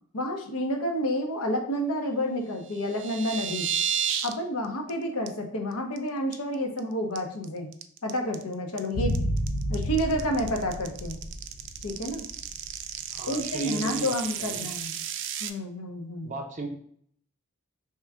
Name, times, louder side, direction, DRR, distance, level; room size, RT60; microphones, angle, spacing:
voice 1, 0.1-3.7 4.2-7.7 8.0-9.1 9.7-11.2 11.8-12.2 13.3-14.9 15.4-16.3, equal, 85° left, 3 dB, 0.9 m, -29 dB
sound 1, 2.7-4.3 4.6-4.9 5.3-5.4 5.7-6.0 6.3-6.8 7.2-15.5, right 9 dB, 55° right, 0.3 m, -33 dB
sound 2, 8.9-13.2 13.4-13.5, equal, 60° left, 0.5 m, -31 dB
voice 2, 13.1-14.8 16.2-16.7, right 2 dB, 35° right, 2 dB, 0.7 m, -36 dB
3.5 x 3.0 x 4.7 m, 0.63 s
head